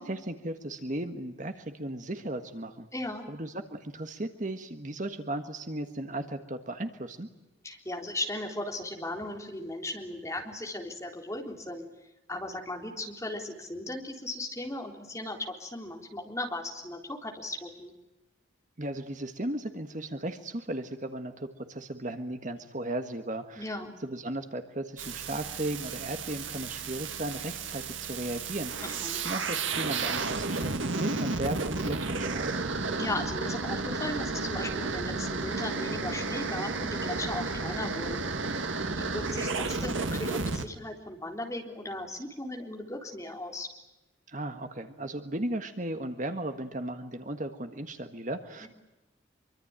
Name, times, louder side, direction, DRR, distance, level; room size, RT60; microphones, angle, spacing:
voice 1, 0.0-2.9 3.3-7.3 18.8-32.5 44.3-48.7, right 1 dB, 40° right, 7 dB, 1.6 m, -36 dB
voice 2, 2.9-3.3 7.6-11.9 12.3-17.9 23.6-23.9 28.8-29.2 32.9-38.2 38.9-43.7 48.6-48.7, left 1 dB, 15° left, 1 dB, 3.8 m, -37 dB
sound 1, 25.0-40.7, right 3 dB, 80° right, 1.8 m, -32 dB
25.5 x 24.5 x 9.0 m, 0.98 s
head